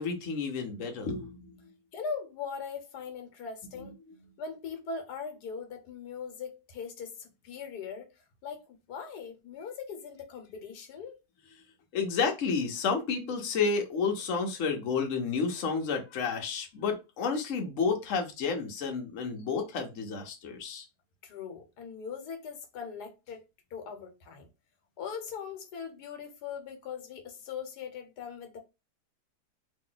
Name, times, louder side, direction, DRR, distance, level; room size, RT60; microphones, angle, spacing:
voice 1, 0.0-1.4 11.9-20.8, left 5 dB, 60° left, 1.0 m, -30 dB
voice 2, 1.9-3.9 4.4-8.1 8.4-8.6 8.9-11.2 21.2-23.4 23.7-24.5 25.0-28.6, left 6 dB, 80° left, 1.4 m, -40 dB
3.0 x 2.7 x 3.8 m
omnidirectional pair, 1.7 m